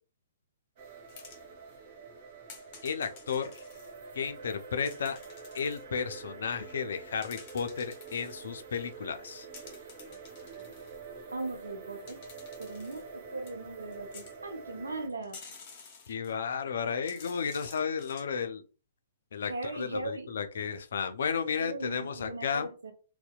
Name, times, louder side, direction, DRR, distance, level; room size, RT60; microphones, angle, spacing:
sound 1, 0.8-15.1, right 5 dB, 40° right, 0.6 m, -47 dB
sound 2, 1.1-1.8 2.5-3.9 4.9-5.8 7.0-8.5 9.5-11.0 12.1-13.0 13.5-13.6 13.9-14.4 15.2-16.5 16.9-18.2, left 5 dB, 40° left, 0.8 m, -51 dB
voice 1, 2.8-3.6 4.1-5.2 5.5-9.5 16.1-18.6 19.3-22.7, left 6 dB, 65° left, 0.4 m, -33 dB
voice 2, 11.3-12.2 12.6-15.4 19.4-20.3 21.6-22.9, right 2 dB, 80° right, 0.5 m, -38 dB
2.7 x 2.1 x 2.3 m
figure-of-eight pair, 120°, 0 cm